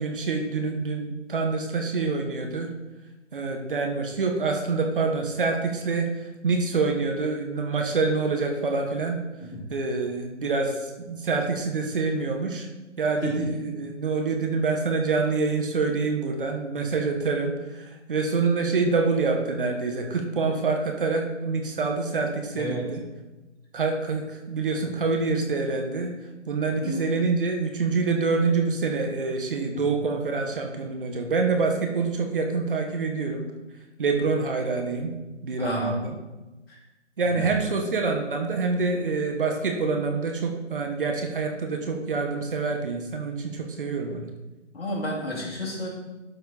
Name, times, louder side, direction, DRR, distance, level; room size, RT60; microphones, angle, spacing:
voice 1, 0.0-2.7 3.3-9.2 9.7-12.7 13.0-23.0 23.7-26.1 26.5-33.4 34.0-35.1 35.4-36.2 37.2-44.3, right 4 dB, 45° right, 3 dB, 1.1 m, -26 dB
voice 2, 22.5-22.9 26.8-27.0 29.7-29.8 35.6-36.0 36.7-36.8 37.3-37.5 44.7-45.9, left 1 dB, 50° left, -3 dB, 2.9 m, -31 dB
12.0 x 4.1 x 4.1 m, 1.1 s
figure-of-eight pair, 145°, 37 cm